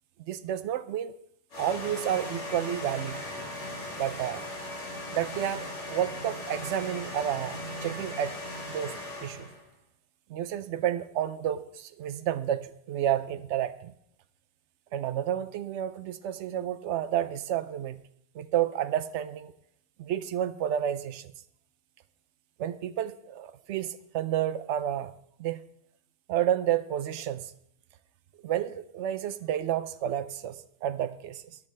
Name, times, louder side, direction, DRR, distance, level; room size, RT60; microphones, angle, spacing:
voice 1, 0.3-1.1 1.6-3.2 4.0-4.4 5.1-8.4 8.7-9.5 10.3-13.9 14.9-18.0 18.3-19.5 20.0-21.3 22.6-25.1 25.4-25.6 26.3-27.5 28.4-31.6, right 11 dB, 75° right, 11 dB, 0.9 m, -30 dB
sound 1, 1.5-9.6, left 1 dB, 75° left, 2.4 m, -38 dB
20.5 x 7.1 x 3.2 m, 0.71 s
omnidirectional pair, 1.2 m